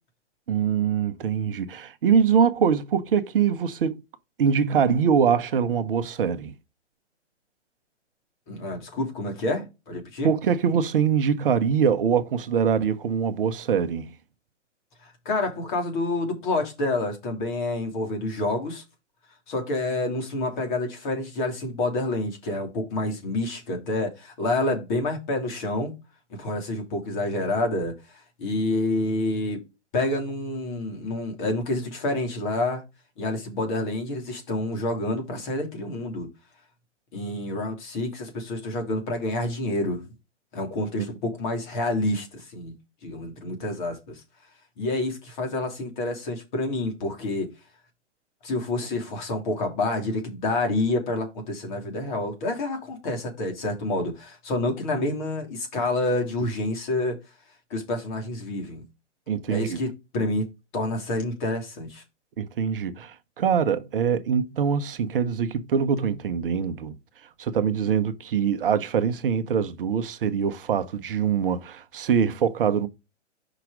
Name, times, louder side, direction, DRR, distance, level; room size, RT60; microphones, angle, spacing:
voice 1, 0.5-4.0 4.4-6.5 10.2-14.1 59.3-59.8 62.4-67.0 67.4-72.9, right 7 dB, 50° right, 0.9 m, -23 dB
voice 2, 8.5-10.3 15.0-18.8 19.5-25.9 26.3-29.6 29.9-32.8 33.2-36.3 37.1-40.0 40.5-42.7 43.0-44.2 44.8-47.5 48.4-57.2 57.7-58.8 59.5-60.5 60.7-62.0, left 2 dB, 40° left, 3.0 m, -28 dB
5.9 x 4.9 x 4.8 m
hypercardioid pair, 135°, 36 cm